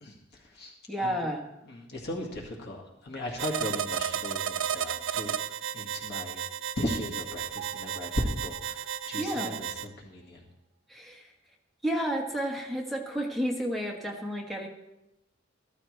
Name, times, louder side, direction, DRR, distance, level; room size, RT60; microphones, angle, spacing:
voice 1, 0.9-1.4 9.2-9.6 10.9-11.3 11.8-14.7, equal, ahead, 0 dB, 1.4 m, -31 dB
voice 2, 1.7-5.4 5.7-6.4 6.8-9.5 10.0-10.4, left 1 dB, 55° left, -1 dB, 1.9 m, -36 dB
sound 1, 3.4-9.9, right 9 dB, 70° right, 0.4 m, -33 dB
14.0 x 13.5 x 3.3 m, 0.94 s
head